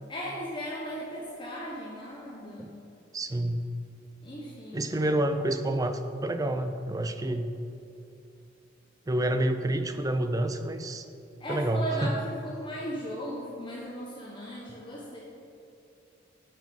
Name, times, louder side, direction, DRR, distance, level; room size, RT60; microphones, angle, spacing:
voice 1, 0.1-2.7 4.2-4.9 11.4-15.2, equal, 25° left, -4 dB, 0.9 m, -37 dB
voice 2, 3.1-3.7 4.7-7.5 9.1-11.0 11.5-12.1, right 1 dB, 20° right, 8 dB, 0.4 m, -28 dB
7.0 x 5.9 x 6.4 m, 2.7 s
head